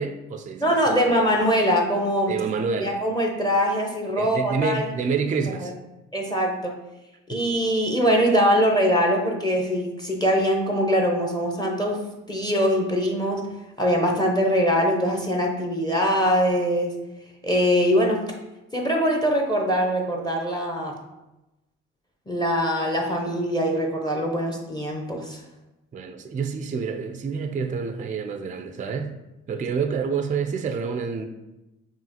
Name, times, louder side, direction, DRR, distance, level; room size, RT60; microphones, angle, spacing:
voice 1, 0.0-1.2 2.3-3.0 4.2-5.7 7.3-7.4 25.9-29.2 29.5-31.3, right 5 dB, 25° right, 6 dB, 0.4 m, -28 dB
voice 2, 0.6-2.5 2.8-4.9 5.6-5.7 6.1-6.8 7.3-13.5 13.8-17.0 17.4-18.3 18.7-21.0 22.3-25.4, equal, 15° left, 1 dB, 0.7 m, -22 dB
5.4 x 2.5 x 2.8 m, 0.97 s
supercardioid pair, 65°, 30 cm